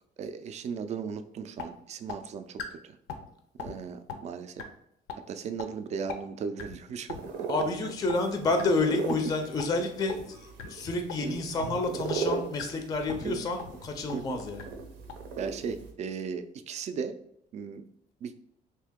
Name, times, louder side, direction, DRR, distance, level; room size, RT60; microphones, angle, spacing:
voice 1, 0.2-3.0 3.6-4.6 5.3-7.5 7.8-7.9 11.2-11.5 13.2-13.4 14.1-14.4 15.4-17.2 17.5-17.8 18.2-18.3, right 6 dB, 40° right, 9 dB, 0.4 m, -37 dB
sound 1, 1.1-1.2 1.6-1.7 2.1-2.2 2.6-2.7 3.1-3.3 3.6-3.7 4.1-4.2 4.6-4.7 5.1-5.2 5.6-5.7 6.1-6.2 6.6-6.8 7.1-7.2 7.6-7.7 8.1-8.2 8.6-8.7 9.1-9.2 9.6-9.7 10.1-10.2 10.6-10.7 11.1-11.2 11.6-11.7 12.1-12.2 12.6-12.7 13.1-13.3 13.6-13.7 14.1-14.2 14.6-14.7 15.1-15.2, left 8 dB, 90° left, 0.5 m, -38 dB
sound 2, 7.1-15.9, right 5 dB, 85° right, 0.7 m, -38 dB
voice 2, 7.5-14.6, left 3 dB, 20° left, 5 dB, 0.4 m, -29 dB
2.8 x 2.7 x 3.5 m, 0.71 s
cardioid pair, 110°, 17 cm